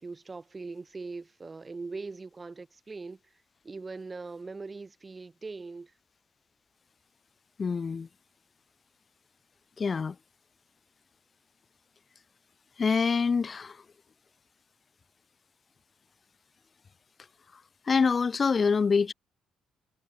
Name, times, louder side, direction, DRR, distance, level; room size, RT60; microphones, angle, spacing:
voice 1, 0.0-5.9, right 3 dB, 30° right, 1.5 m, -41 dB
voice 2, 7.6-8.1 9.8-10.2 12.8-13.8 17.9-19.1, left 5 dB, 40° left, 1.4 m, -25 dB
supercardioid pair, 60°, 0 cm